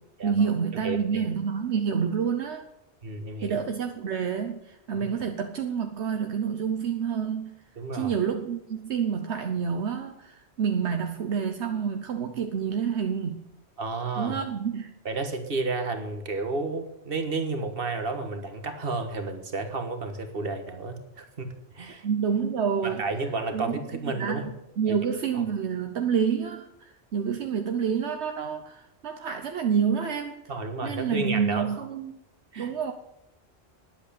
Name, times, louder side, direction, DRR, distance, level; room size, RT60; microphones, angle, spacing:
voice 1, 0.2-2.7 3.4-7.5 7.9-13.4 14.2-14.9 22.0-23.1 23.5-24.5 24.8-30.4 30.8-32.2 32.6-32.9, right 7 dB, 75° right, 5 dB, 1.2 m, -28 dB
voice 2, 0.8-1.3 3.0-3.6 5.0-5.1 7.8-8.1 13.8-14.3 15.1-22.1 22.8-24.5 25.3-25.4 30.5-31.7 32.5-32.7, right 3 dB, 55° right, 6 dB, 1.7 m, -31 dB
10.5 x 8.2 x 8.6 m, 0.86 s
omnidirectional pair, 1.1 m